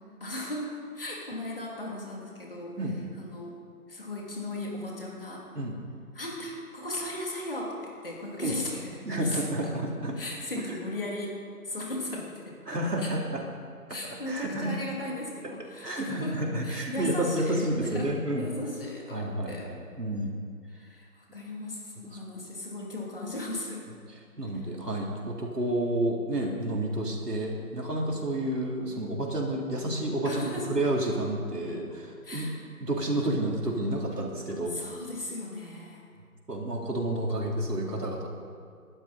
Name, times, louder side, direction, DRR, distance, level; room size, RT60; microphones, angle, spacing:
voice 1, 0.2-2.8 3.2-3.6 3.9-5.5 6.1-9.8 10.2-12.6 13.0-13.2 13.9-16.4 16.6-18.1 18.4-19.7 20.7-23.9 30.2-30.7 32.2-32.5 34.7-36.0, left 1 dB, 35° left, -3 dB, 3.0 m, -36 dB
voice 2, 9.1-10.1 10.7-10.8 12.7-13.4 14.1-14.8 15.4-15.5 15.8-18.5 19.1-20.4 24.4-32.5 32.8-34.8 36.5-38.3, right 1 dB, 90° right, -1 dB, 3.8 m, -30 dB
19.5 x 12.0 x 4.3 m, 2.2 s
figure-of-eight pair, 180°, 46 cm